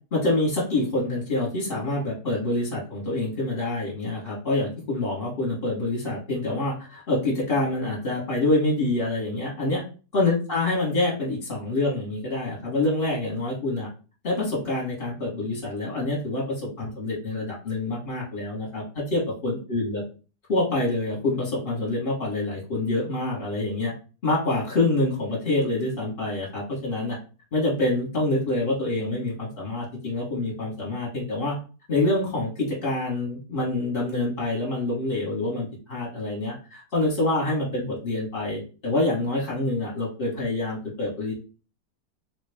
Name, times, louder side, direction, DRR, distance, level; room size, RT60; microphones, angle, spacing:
voice 1, 0.1-9.8 10.1-13.9 14.2-20.0 20.5-23.9 24.2-27.2 27.5-31.6 31.9-41.3, left 2 dB, 35° left, -5 dB, 1.1 m, -26 dB
4.0 x 2.2 x 3.3 m, 0.35 s
omnidirectional pair, 1.8 m